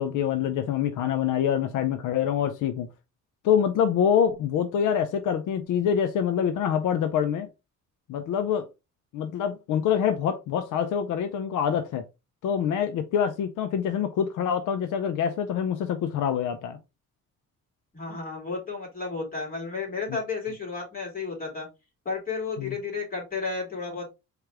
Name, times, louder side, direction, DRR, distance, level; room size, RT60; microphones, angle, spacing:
voice 1, 0.0-2.9 3.4-7.5 8.1-8.7 9.1-12.1 12.4-16.8 22.6-22.7, left 8 dB, 80° left, 0.6 m, -25 dB
voice 2, 17.9-21.7 22.0-24.1, left 4 dB, 30° left, 2.9 m, -32 dB
4.7 x 3.2 x 3.4 m
cardioid pair, 150°, 31 cm